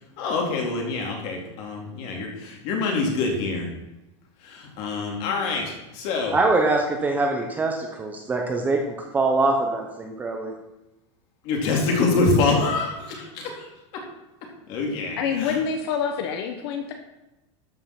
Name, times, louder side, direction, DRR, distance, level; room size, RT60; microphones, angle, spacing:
voice 1, 0.2-3.7 4.4-6.4 11.4-13.7 13.9-14.0 14.7-15.6, left 3 dB, 35° left, 1 dB, 2.5 m, -25 dB
voice 2, 6.3-8.8 9.1-10.5, right 3 dB, 10° right, 2 dB, 0.8 m, -23 dB
voice 3, 15.2-16.9, left 6 dB, 55° left, 5 dB, 1.1 m, -26 dB
13.0 x 5.6 x 5.8 m, 0.98 s
supercardioid pair, 180°, 16 cm